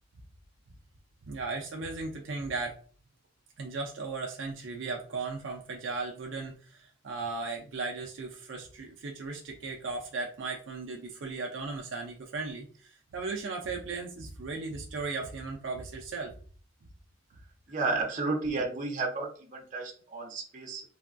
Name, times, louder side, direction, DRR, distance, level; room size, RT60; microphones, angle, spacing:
voice 1, 1.2-2.8 3.6-16.4, right 3 dB, 70° right, 1 dB, 0.4 m, -36 dB
voice 2, 17.7-20.8, right 3 dB, 40° right, 0 dB, 0.7 m, -32 dB
3.3 x 2.2 x 2.5 m, 0.43 s
head